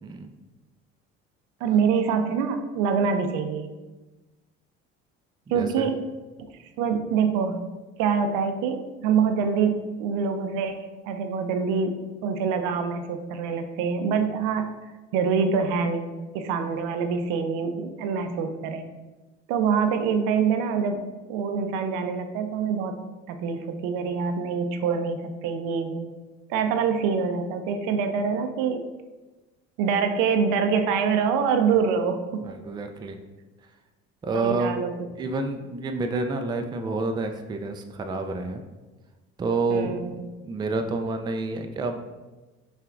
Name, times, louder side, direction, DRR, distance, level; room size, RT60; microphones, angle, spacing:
voice 1, 0.0-0.3 5.5-5.9 32.4-33.2 34.2-34.7 35.2-38.6 39.4-42.0, right 3 dB, 15° right, 5 dB, 0.3 m, -29 dB
voice 2, 1.6-3.7 5.5-6.0 6.8-7.6 8.0-11.9 12.2-14.7 15.1-16.1 16.3-18.8 19.5-21.0 21.3-22.9 23.3-26.1 26.5-28.8 29.8-32.5 34.3-34.9 39.7-40.2, right 6 dB, 70° right, 7 dB, 0.5 m, -25 dB
5.6 x 2.4 x 2.5 m, 1.2 s
hypercardioid pair, 65°, 33 cm